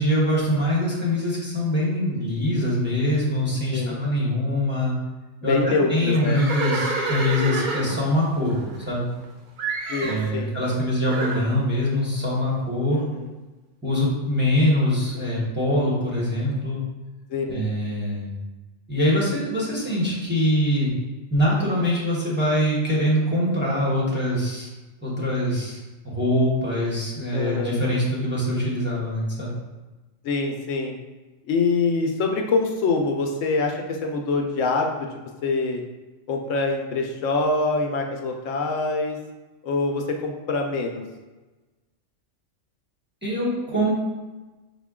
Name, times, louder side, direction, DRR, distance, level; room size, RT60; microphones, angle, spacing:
voice 1, 0.0-4.9 5.4-8.5 8.9-9.1 10.0-13.0 13.8-16.8 17.5-18.3 18.9-20.9 21.3-24.7 25.0-29.5 43.2-44.0, left 1 dB, 10° right, -7 dB, 0.9 m, -23 dB
voice 2, 5.4-6.4 9.9-10.5 12.9-13.3 17.3-17.7 27.3-27.8 30.2-31.0 31.5-34.9 35.4-35.8 36.3-39.2 39.6-41.0, left 3 dB, 80° left, 3 dB, 1.0 m, -25 dB
Livestock farm animals working animals, 6.1-9.2 9.6-10.3 11.1-11.5, right 3 dB, 55° right, 0.6 m, -28 dB
5.5 x 2.2 x 3.6 m, 1.2 s
omnidirectional pair, 1.3 m